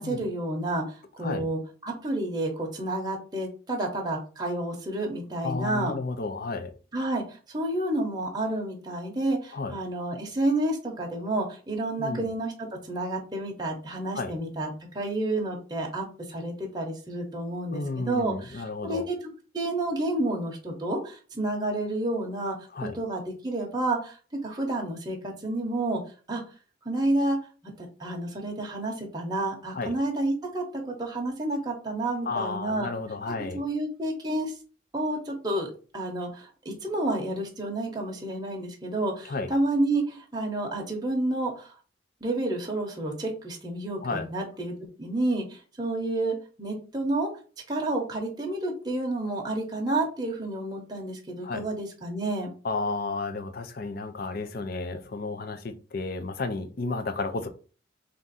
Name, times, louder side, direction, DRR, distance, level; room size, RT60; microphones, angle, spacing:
voice 1, 0.0-5.9 6.9-12.5 12.9-19.2 19.5-22.5 22.8-24.2 24.4-26.0 26.3-26.4 26.8-27.4 27.8-32.9 33.5-34.5 34.9-41.7 42.2-44.7 45.0-47.3 47.7-52.5, right 2 dB, 20° right, 0.9 m, -30 dB
voice 2, 5.4-6.7 9.5-9.8 12.0-12.3 14.1-14.3 17.7-19.0 22.7-23.0 29.7-30.0 32.3-33.6 39.3-39.5 44.0-44.3 51.4-51.6 52.6-57.5, left 3 dB, 50° left, 0.5 m, -32 dB
3.6 x 2.6 x 4.0 m
head